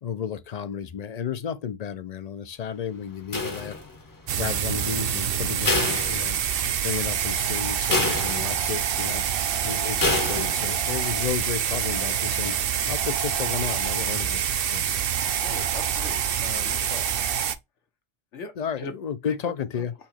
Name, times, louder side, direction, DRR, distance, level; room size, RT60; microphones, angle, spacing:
voice 1, 0.0-3.8 4.4-6.4 6.8-9.2 9.6-14.4 14.7-14.9 18.6-19.9, left 7 dB, 60° left, 0.4 m, -32 dB
sound 1, 3.3-4.1 5.6-6.8 7.2-7.3 7.9-8.8 10.0-10.8, left 2 dB, 20° left, 0.6 m, -27 dB
sound 2, 4.3-17.5, right 9 dB, 60° right, 0.7 m, -26 dB
voice 2, 15.4-17.1 18.3-18.9 19.3-19.4, left 4 dB, 85° left, 1.3 m, -40 dB
4.2 x 2.9 x 4.3 m
omnidirectional pair, 1.2 m